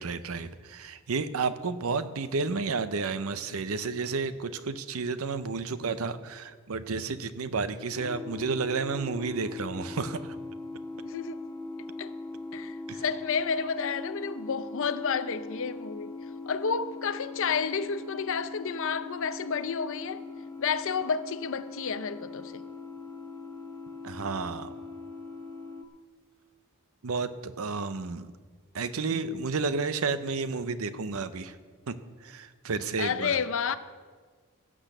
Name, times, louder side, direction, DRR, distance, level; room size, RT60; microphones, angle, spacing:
voice 1, 0.0-10.4 12.9-13.0 24.0-24.7 27.0-28.3 28.7-31.6 31.9-32.0 32.2-33.4, right 4 dB, 70° right, 0.7 m, -31 dB
sound 1, 8.0-25.8, left 3 dB, 15° left, 0.7 m, -41 dB
voice 2, 11.0-11.4 12.0-12.1 12.5-16.1 16.5-20.2 20.6-22.6 33.0-33.8, left 6 dB, 60° left, 0.6 m, -30 dB
16.0 x 6.2 x 6.6 m
head